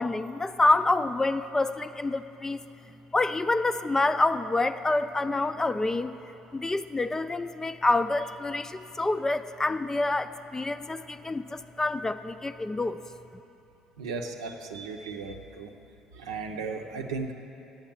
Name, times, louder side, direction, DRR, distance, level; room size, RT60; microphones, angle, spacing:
voice 1, 0.0-2.6 3.1-6.1 6.5-13.0, left 2 dB, 20° left, 11 dB, 0.4 m, -27 dB
voice 2, 14.0-15.7 16.1-17.3, right 4 dB, 85° right, 3 dB, 0.6 m, -35 dB
9.0 x 7.3 x 7.1 m, 2.8 s
hypercardioid pair, 60°, 3 cm